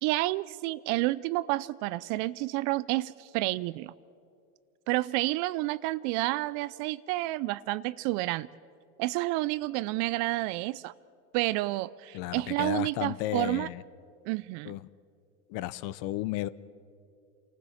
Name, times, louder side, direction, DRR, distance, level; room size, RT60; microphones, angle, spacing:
voice 1, 0.0-3.9 4.9-8.5 9.0-10.9 11.3-13.7 14.3-14.8, right 19 dB, 45° right, 19 dB, 0.4 m, -30 dB
voice 2, 12.1-13.8 14.6-14.9 15.5-16.5, left 15 dB, 50° left, 18 dB, 0.8 m, -33 dB
27.5 x 14.5 x 7.1 m, 2.4 s
supercardioid pair, 120°, 43 cm